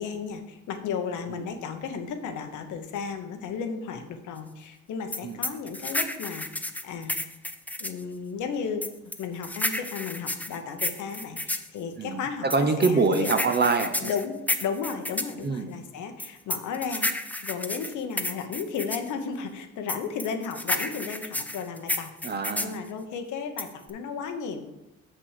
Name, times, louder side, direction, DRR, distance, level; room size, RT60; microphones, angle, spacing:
voice 1, 0.0-7.1 7.8-8.8 9.2-13.3 14.0-17.1 17.4-22.1 22.6-24.6, left 6 dB, 80° left, 6 dB, 1.0 m, -34 dB
sound 1, 5.1-8.0 8.8-11.7 12.5-15.3 16.2-19.1 19.9-22.8 23.6-23.9, left 1 dB, 5° left, 0.5 m, -31 dB
voice 2, 12.0-14.1 15.4-15.7 22.2-22.8, right 4 dB, 35° right, 8 dB, 0.8 m, -25 dB
6.0 x 5.9 x 4.9 m, 0.95 s
cardioid pair, 90°, 30 cm